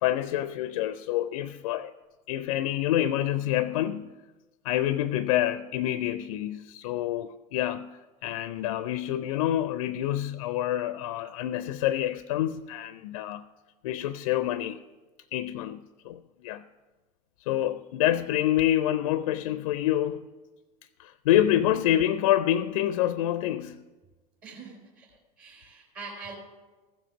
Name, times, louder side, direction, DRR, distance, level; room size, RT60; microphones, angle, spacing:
voice 1, 0.0-1.9 2.3-4.1 4.6-13.4 13.8-14.8 15.3-16.6 17.5-20.2 21.0-23.8, left 12 dB, 60° left, 0.4 m, -27 dB
voice 2, 21.4-21.8 24.4-25.1 25.4-26.3, right 4 dB, 45° right, 3.1 m, -43 dB
15.0 x 7.4 x 5.8 m
figure-of-eight pair, 75°, 20 cm